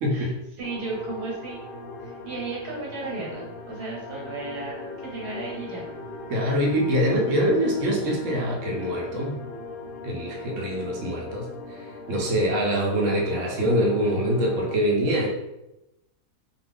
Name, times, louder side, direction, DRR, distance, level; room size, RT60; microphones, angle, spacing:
voice 1, 0.0-0.3 6.3-9.4 10.0-15.3, equal, 60° right, -1 dB, 0.9 m, -24 dB
sound 1, 0.6-14.8, left 3 dB, 85° left, 0.5 m, -39 dB
voice 2, 0.6-1.6 2.0-5.8 6.7-7.6, right 3 dB, 85° right, -3 dB, 1.4 m, -35 dB
2.5 x 2.4 x 3.4 m, 0.94 s
omnidirectional pair, 1.7 m